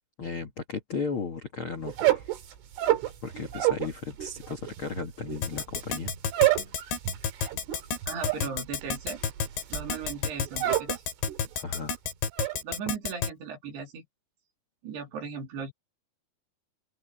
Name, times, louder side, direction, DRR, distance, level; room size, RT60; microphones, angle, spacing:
voice 1, 0.2-2.3 3.2-6.1 11.6-12.0, left 4 dB, 85° left, 1.1 m, -35 dB
sound 1, 1.9-3.9 4.2-11.0 11.3-11.8 12.1-12.6, right 15 dB, 85° right, 5.4 m, -28 dB
Keyboard (musical), 5.4-13.3, left 6 dB, 65° left, 5.0 m, -30 dB
voice 2, 8.1-9.2 9.7-10.9 12.6-14.0 14.8-15.7, right 6 dB, 60° right, 5.3 m, -37 dB
open air
omnidirectional pair, 5.5 m